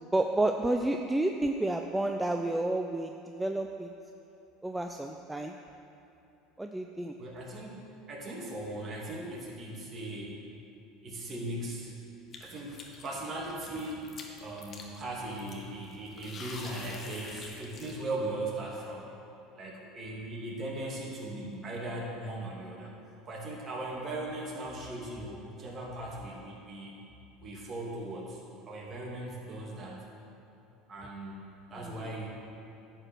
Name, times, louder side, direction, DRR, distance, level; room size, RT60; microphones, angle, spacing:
voice 1, 0.1-3.9 4.6-5.6 6.6-7.1 31.8-32.1, right 1 dB, 10° right, 4 dB, 0.5 m, -30 dB
voice 2, 7.2-10.4 11.0-11.9 12.4-19.0 19.5-22.9 23.2-26.9 27.4-28.4 28.7-30.1 30.9-31.4 31.7-32.3, right 1 dB, 35° right, -3 dB, 2.6 m, -38 dB
sound 1, 12.3-18.1, left 3 dB, 40° left, 1.4 m, -47 dB
10.5 x 5.0 x 7.7 m, 2.9 s
hypercardioid pair, 90°, 0 cm